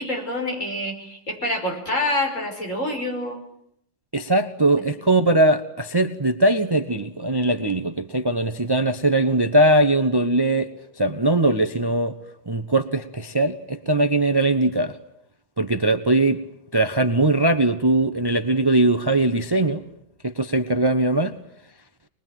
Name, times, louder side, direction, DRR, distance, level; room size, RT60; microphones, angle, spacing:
voice 1, 0.0-3.4, left 1 dB, 35° left, 2 dB, 5.9 m, -26 dB
voice 2, 4.1-10.7 11.0-12.1 12.5-15.0 15.6-16.4 16.7-19.8 20.2-21.3, right 2 dB, 40° right, 9 dB, 0.3 m, -20 dB
25.5 x 21.0 x 9.2 m, 0.75 s
omnidirectional pair, 2.2 m